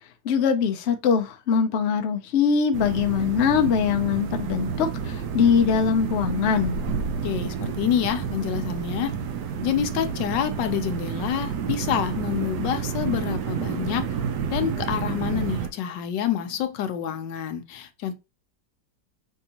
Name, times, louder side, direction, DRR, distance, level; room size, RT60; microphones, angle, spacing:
voice 1, 0.2-6.8, left 6 dB, 65° left, 0.6 m, -22 dB
sound 1, 2.7-15.7, right 7 dB, 75° right, 1.2 m, -30 dB
voice 2, 7.2-9.2 9.6-14.2 14.5-18.1, left 9 dB, 80° left, 1.3 m, -27 dB
5.3 x 2.6 x 2.8 m
omnidirectional pair, 1.9 m